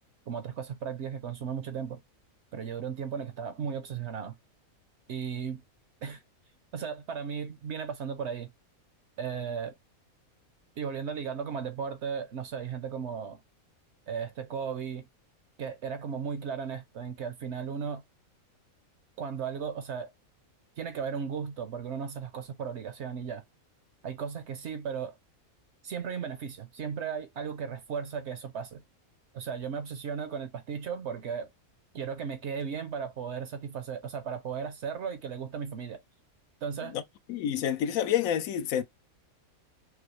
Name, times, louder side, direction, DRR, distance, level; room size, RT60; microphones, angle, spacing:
voice 1, 0.3-2.0 2.5-4.4 5.1-5.6 6.0-6.2 6.7-8.5 9.2-9.7 10.8-13.4 14.1-15.1 15.6-18.0 19.2-20.1 20.8-23.4 24.0-25.2 25.8-28.8 29.3-31.5 31.9-36.0 36.6-37.0, right 7 dB, 60° right, 0.8 m, -35 dB
voice 2, 37.3-38.8, left 10 dB, 75° left, 1.0 m, -28 dB
4.8 x 2.0 x 3.1 m
omnidirectional pair, 1.5 m